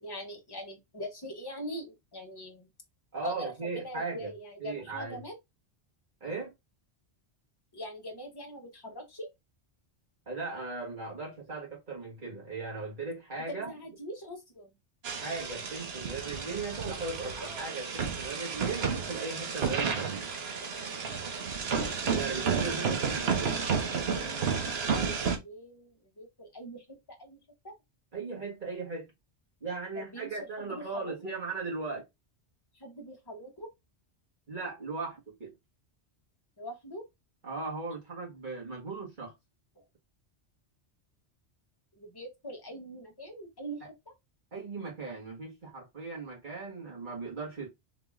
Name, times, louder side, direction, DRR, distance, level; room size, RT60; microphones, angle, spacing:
voice 1, 0.0-2.7 3.2-5.4 7.7-9.3 13.5-14.7 24.2-26.8 27.2-27.4 27.6-27.7 29.9-31.3 32.8-33.7 36.6-37.1 42.0-43.8 44.1-44.2, equal, 20° left, 1.2 m, -42 dB
voice 2, 3.1-4.3 4.6-5.2 6.2-6.5 10.3-13.7 15.2-20.3 22.2-23.5 28.1-29.1 29.6-32.0 34.5-35.5 37.4-39.3 43.8-43.9 44.5-47.7, right 4 dB, 45° right, 2.0 m, -37 dB
sound 1, 15.0-25.4, right 6 dB, 65° right, 1.1 m, -32 dB
3.9 x 2.9 x 3.6 m
omnidirectional pair, 1.1 m